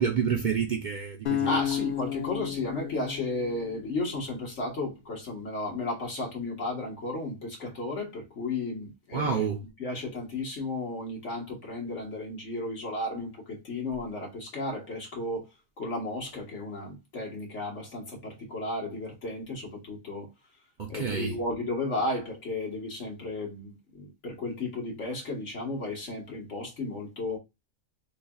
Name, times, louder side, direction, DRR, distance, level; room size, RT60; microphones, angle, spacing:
voice 1, 0.0-1.6 9.1-9.6 20.8-21.4, right 6 dB, 50° right, 0.6 m, -28 dB
sound 1, 1.3-4.4, left 11 dB, 50° left, 0.8 m, -32 dB
voice 2, 1.4-15.5 15.8-20.3 20.9-27.4, left 2 dB, 70° left, 1.6 m, -34 dB
4.0 x 3.2 x 2.3 m
omnidirectional pair, 1.3 m